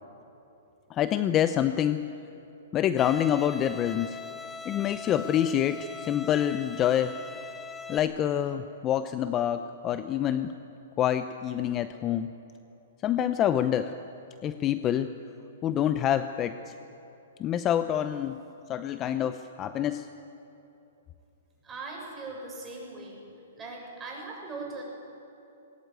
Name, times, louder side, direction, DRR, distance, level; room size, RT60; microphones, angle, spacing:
voice 1, 0.9-2.1 2.7-4.2 4.6-7.2 7.9-10.5 11.0-12.3 13.0-13.9 14.4-15.1 15.6-16.7 17.4-18.4 18.7-20.1, left 10 dB, 25° left, 11 dB, 0.7 m, -27 dB
Bowed string instrument, 3.0-8.0, left 4 dB, 5° left, 1.0 m, -41 dB
voice 2, 21.6-23.2 23.5-24.8, right 3 dB, 15° right, -2 dB, 7.4 m, -40 dB
20.0 x 19.0 x 9.3 m, 2.9 s
hypercardioid pair, 140°, 0 cm